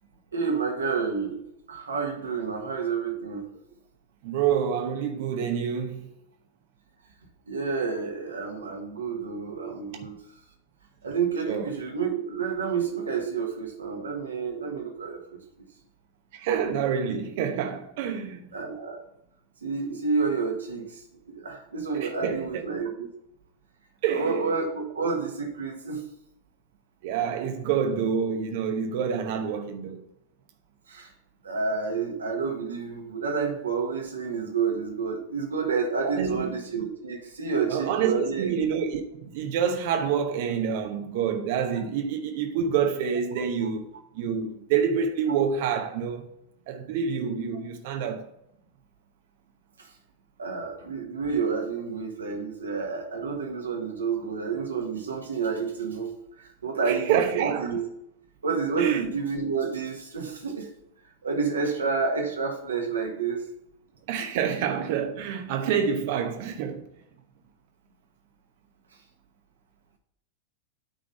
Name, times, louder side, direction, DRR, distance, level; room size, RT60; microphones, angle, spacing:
voice 1, 0.3-3.4 7.5-10.2 11.0-15.4 18.5-19.0 19.6-21.0 21.3-23.1 24.1-26.0 30.9-31.1 31.4-38.5 43.6-43.7 50.4-57.9 58.4-60.7 61.2-63.5, right 5 dB, 70° right, 1.5 m, -29 dB
voice 2, 4.2-6.1 11.5-11.7 16.3-18.4 22.0-22.6 24.0-24.4 27.0-30.0 36.0-36.5 37.7-43.9 44.1-46.3 46.7-48.2 56.8-57.7 58.8-59.1 64.1-66.8, right 7 dB, 50° right, 1.0 m, -27 dB
9.0 x 3.9 x 5.4 m
figure-of-eight pair, 90°, 0 cm